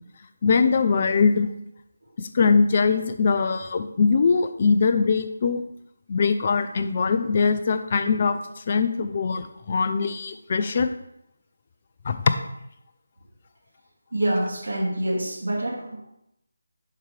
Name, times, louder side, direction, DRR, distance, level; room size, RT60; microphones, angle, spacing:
voice 1, 0.4-1.5 2.2-5.6 6.1-10.9 12.0-12.3, left 5 dB, 40° left, 9 dB, 0.5 m, -22 dB
voice 2, 14.1-16.0, right 1 dB, 70° right, -4 dB, 2.7 m, -26 dB
10.5 x 4.7 x 3.4 m, 0.80 s
figure-of-eight pair, 155°, 0 cm